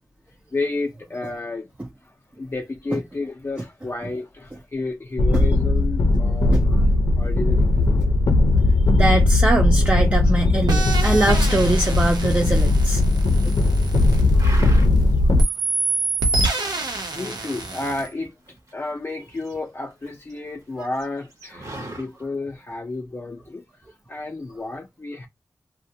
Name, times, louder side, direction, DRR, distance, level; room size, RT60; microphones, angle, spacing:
voice 1, 0.5-1.7 2.4-6.6 7.2-8.1 17.1-18.3 18.7-21.7 22.0-23.6 24.1-25.3, left 3 dB, 35° left, 0.5 m, -31 dB
sound 1, 5.2-15.4, left 2 dB, 90° left, 0.5 m, -18 dB
voice 2, 8.9-13.0 13.5-13.6, right 2 dB, 20° right, 0.4 m, -22 dB
sound 2, 10.7-15.0 15.4-18.1, right 2 dB, 80° right, 0.7 m, -27 dB
sound 3, 12.2-13.0 13.4-13.8 14.1-15.2 15.6-15.7 16.0-16.5 17.0-18.8 19.1-20.3 20.6-20.7 20.9-22.1, right 1 dB, 50° right, 1.0 m, -37 dB
2.4 x 2.1 x 2.7 m
wide cardioid pair, 110°, 7 cm